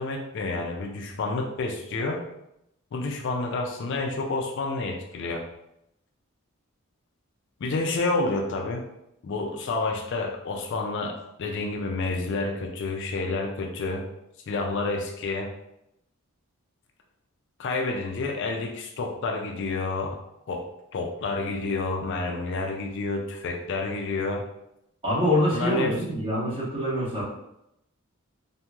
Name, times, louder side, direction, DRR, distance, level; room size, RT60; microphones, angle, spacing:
voice 1, 0.0-2.2 2.9-5.5 7.6-8.8 9.2-14.1 14.5-15.5 17.6-20.2 20.5-20.7 20.9-24.4 25.5-26.0, left 3 dB, 55° left, 2 dB, 0.3 m, -29 dB
voice 2, 25.0-27.2, equal, 25° right, -9 dB, 1.2 m, -25 dB
2.9 x 2.6 x 2.3 m, 0.82 s
head